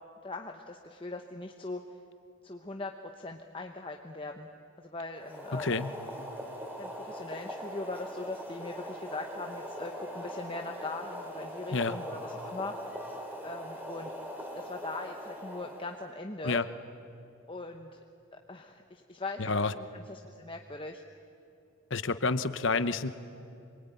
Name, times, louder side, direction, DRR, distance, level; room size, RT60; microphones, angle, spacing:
voice 1, 0.2-1.8 2.4-4.5 4.8-5.7 6.8-12.7 13.4-14.1 14.5-16.6 17.5-18.0 18.5-21.0, left 2 dB, 25° left, 3 dB, 0.9 m, -40 dB
Boiling, 5.1-16.1, equal, 10° right, 3.1 m, -41 dB
voice 2, 5.5-5.9 11.7-12.0 16.4-16.7 19.4-19.7 21.9-23.1, left 3 dB, 55° left, 12 dB, 0.9 m, -29 dB
26.0 x 23.5 x 9.3 m, 2.7 s
head